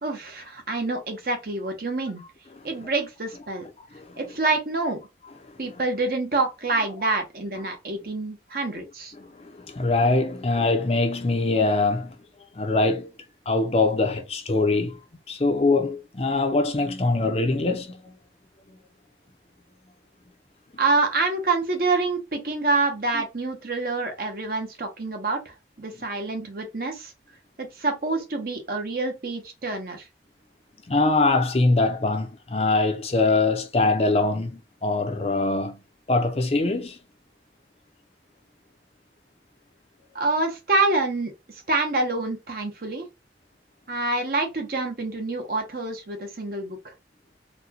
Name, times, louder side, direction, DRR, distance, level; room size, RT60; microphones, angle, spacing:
voice 1, 0.0-2.2 2.6-3.6 4.2-5.0 5.6-9.1 20.8-27.1 27.6-30.1 40.1-43.1 43.9-46.9, right 3 dB, 50° right, 0.8 m, -27 dB
voice 2, 9.2-12.1 12.5-13.1 13.5-15.0 15.3-18.1 25.9-26.0 30.9-35.8 36.1-37.0, left 3 dB, 35° left, 0.5 m, -23 dB
4.1 x 2.2 x 2.8 m
head